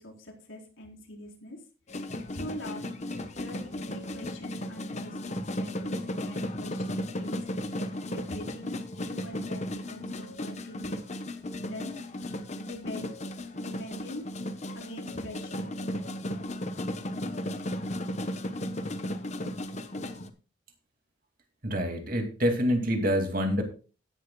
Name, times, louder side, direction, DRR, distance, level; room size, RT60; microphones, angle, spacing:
voice 1, 0.0-1.6 2.3-2.8 3.4-7.4 8.1-11.0 11.6-11.9 12.5-13.1 13.5-14.2 14.7-15.6, left 1 dB, 85° left, 0 dB, 4.1 m, -43 dB
sound 1, 1.9-20.3, left 1 dB, 35° left, 0.9 m, -35 dB
voice 2, 21.6-23.6, equal, 45° right, 4 dB, 2.4 m, -26 dB
16.5 x 11.0 x 2.3 m, 0.34 s
head